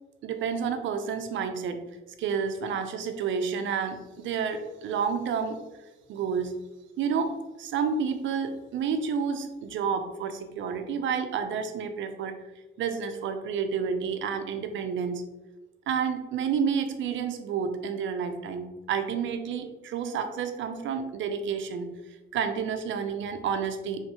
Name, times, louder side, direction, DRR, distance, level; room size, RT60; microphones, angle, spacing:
voice 1, 0.2-1.8 2.2-5.6 6.1-6.5 7.0-12.4 12.8-15.2 15.9-21.9 22.3-24.0, right 6 dB, 75° right, 7 dB, 0.6 m, -30 dB
4.6 x 3.2 x 3.0 m, 1.1 s
cardioid pair, 90°, 20 cm